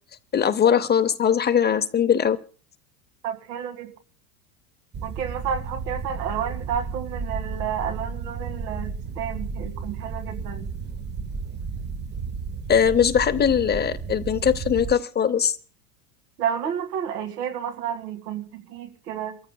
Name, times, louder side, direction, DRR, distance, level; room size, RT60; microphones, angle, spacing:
voice 1, 0.3-2.4 12.7-15.6, left 8 dB, 20° left, 0.6 m, -20 dB
voice 2, 3.2-3.9 5.0-10.7 16.4-19.4, right 8 dB, 85° right, 2.1 m, -31 dB
sound 1, 4.9-14.9, right 5 dB, 20° right, 0.7 m, -33 dB
28.5 x 14.0 x 2.2 m
supercardioid pair, 125°, 47 cm